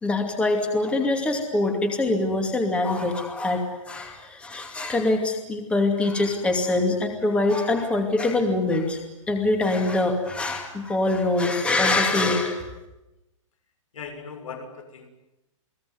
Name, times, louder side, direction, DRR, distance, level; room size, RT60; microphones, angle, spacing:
voice 1, 0.0-9.0 9.3-12.7, left 2 dB, 5° left, 3 dB, 2.6 m, -24 dB
voice 2, 13.9-15.1, left 5 dB, 80° left, 6 dB, 7.0 m, -38 dB
30.0 x 19.5 x 9.7 m, 0.97 s
hypercardioid pair, 170°, 17 cm